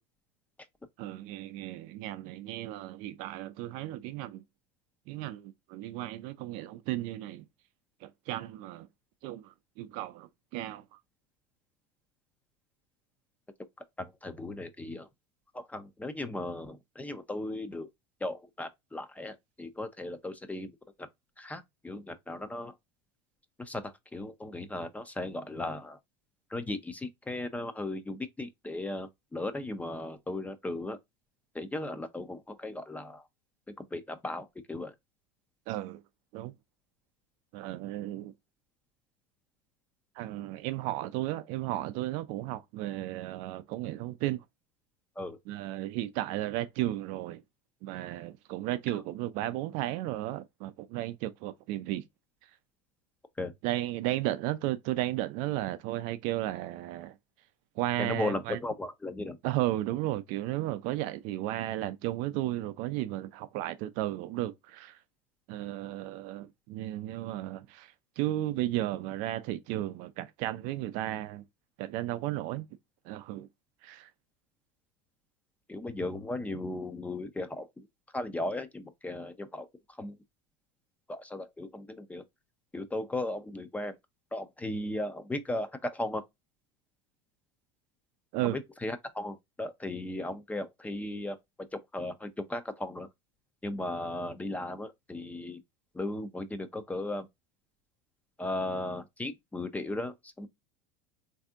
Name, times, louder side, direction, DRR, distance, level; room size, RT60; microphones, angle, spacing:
voice 1, 1.0-4.4 5.1-7.4 8.0-8.9 9.2-10.8 35.7-36.0 36.3-36.5 37.5-38.3 40.2-44.4 45.5-47.4 47.8-52.0 53.6-57.1 57.8-58.6 59.4-64.9 65.5-71.4 71.8-72.7 73.1-73.5 73.8-74.1 88.3-88.6, right 15 dB, 55° right, 0.5 m, -34 dB
voice 2, 14.0-15.1 15.5-17.9 18.2-20.7 21.0-21.1 21.4-22.7 23.6-26.0 26.5-31.0 31.5-33.2 33.8-34.9 45.2-45.4 53.4-53.5 58.0-59.4 75.7-77.9 78.1-79.7 80.0-80.2 81.1-82.2 82.7-83.9 84.3-86.2 88.4-91.4 91.7-93.1 93.6-95.6 95.9-97.3 98.4-100.5, left 2 dB, 10° left, 0.5 m, -36 dB
3.4 x 2.6 x 2.4 m
supercardioid pair, 115°, 15 cm